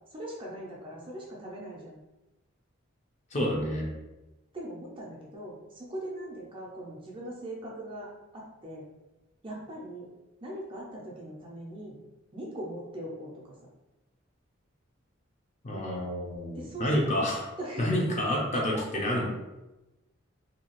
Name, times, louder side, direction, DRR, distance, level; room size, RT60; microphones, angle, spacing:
voice 1, 0.1-2.0 4.5-8.9 9.4-10.1 10.4-12.0 12.3-13.6 16.5-17.1 17.6-17.9 18.5-18.6, right 1 dB, 25° right, -3 dB, 0.5 m, -40 dB
voice 2, 3.3-3.9 15.6-17.4 17.8-19.3, left 1 dB, 35° left, -2 dB, 0.5 m, -28 dB
2.7 x 2.3 x 2.9 m, 1.0 s
head